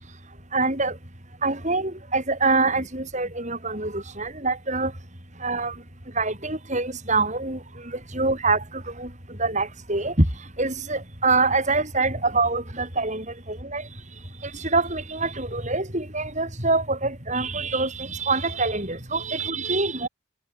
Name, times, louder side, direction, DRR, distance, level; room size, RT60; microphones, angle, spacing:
voice 1, 0.5-0.9 1.4-4.9 5.4-5.7 6.2-7.6 8.1-9.1 9.4-10.3 10.6-13.8 14.5-20.1, right 3 dB, 35° right, 6.6 m, -25 dB
head